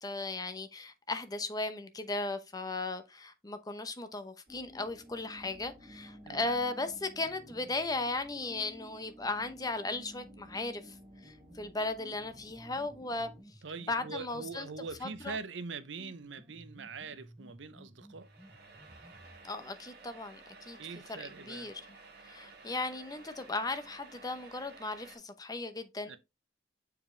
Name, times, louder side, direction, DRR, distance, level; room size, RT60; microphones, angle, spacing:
voice 1, 0.0-11.0 11.2-13.3 13.9-14.7 15.0-15.4 19.4-20.8 21.2-21.7 22.2-26.2, left 3 dB, 20° left, 0.7 m, -36 dB
sound 1, 4.5-7.8 8.5-15.5 16.0-19.5, equal, ahead, 1.3 m, -55 dB
sound 2, 4.5-13.4, equal, 35° right, 2.4 m, -58 dB
voice 2, 6.2-6.6 13.6-18.3 20.8-21.7 26.0-26.2, right 4 dB, 70° right, 0.7 m, -43 dB
sound 3, 18.2-25.2, right 4 dB, 55° right, 1.6 m, -54 dB
7.1 x 4.8 x 3.2 m
head